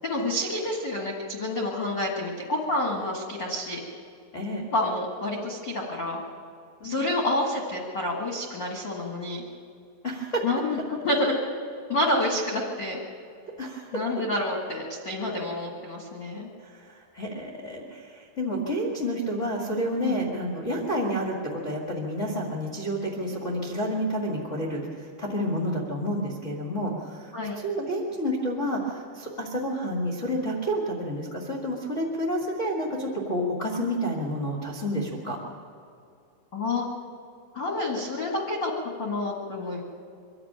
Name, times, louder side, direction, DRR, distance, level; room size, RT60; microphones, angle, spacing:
voice 1, 0.0-3.8 4.7-6.2 6.8-9.4 10.4-11.4 11.9-13.0 13.9-16.5 20.0-20.2 27.3-27.6 36.5-36.8 37.5-38.7 39.0-39.8, left 1 dB, 70° left, -1 dB, 1.0 m, -28 dB
voice 2, 4.3-4.7 6.8-7.2 10.0-10.4 13.6-14.0 16.6-35.4, equal, 85° left, -2 dB, 0.6 m, -30 dB
24.0 x 12.5 x 8.9 m, 2.4 s
omnidirectional pair, 5.2 m